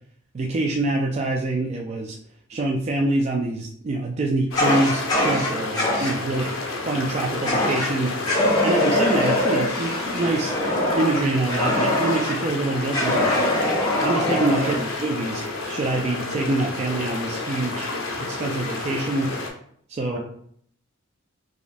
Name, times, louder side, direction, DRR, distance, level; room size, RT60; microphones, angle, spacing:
voice 1, 0.3-2.2 2.5-6.6 6.9-8.1 8.6-10.5 10.9-13.3 14.0-17.9 18.2-19.3 19.9-20.2, right 2 dB, 35° right, 0 dB, 0.3 m, -25 dB
sound 1, 4.5-19.5, left 3 dB, 75° left, 0.8 m, -30 dB
Fire, 4.5-6.2 7.5-7.9 8.2-12.4 12.9-14.8, left 1 dB, 20° left, 1.0 m, -23 dB
voice 2, 6.2-6.5 14.6-14.8 20.1-20.2, right 2 dB, 70° right, -2 dB, 1.3 m, -34 dB
5.0 x 2.4 x 2.5 m, 0.63 s
head